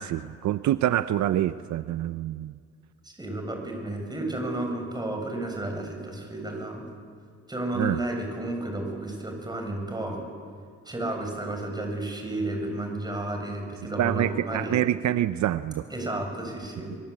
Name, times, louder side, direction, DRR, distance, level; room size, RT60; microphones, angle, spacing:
voice 1, 0.0-2.6 7.8-8.0 14.0-15.9, right 12 dB, 70° right, 13 dB, 0.7 m, -26 dB
voice 2, 3.0-6.8 7.5-10.2 10.9-14.8 15.9-16.9, right 1 dB, 15° right, 3 dB, 7.4 m, -32 dB
24.0 x 23.5 x 8.6 m, 2.1 s
cardioid pair, 90°, 30 cm